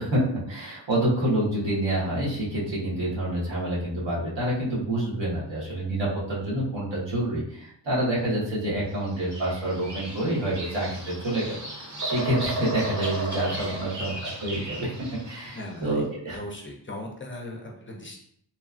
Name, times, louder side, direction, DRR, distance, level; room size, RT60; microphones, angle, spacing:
voice 1, 0.0-11.6 12.0-14.9 15.2-16.4, right 1 dB, 80° right, -7 dB, 1.3 m, -27 dB
Bird vocalization bird call bird song, 9.0-15.7, right 1 dB, 40° right, 0.8 m, -35 dB
voice 2, 15.5-16.0 16.3-18.2, left 1 dB, 30° left, 1 dB, 0.4 m, -38 dB
3.0 x 2.3 x 2.4 m, 0.68 s
wide cardioid pair, 100°, 43 cm